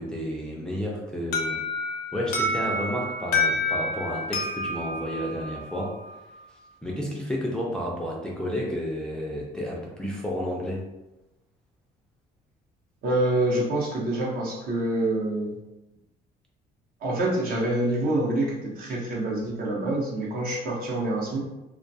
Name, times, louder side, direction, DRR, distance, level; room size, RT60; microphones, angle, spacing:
voice 1, 0.0-1.6 2.1-6.0 6.8-10.8, equal, 5° left, -3 dB, 0.4 m, -31 dB
Alarm, 1.3-6.1, left 2 dB, 65° left, 0.6 m, -28 dB
voice 2, 13.0-15.6 17.0-21.4, right 1 dB, 60° right, -3 dB, 0.8 m, -26 dB
2.2 x 2.2 x 2.6 m, 0.98 s
cardioid pair, 110°, 17 cm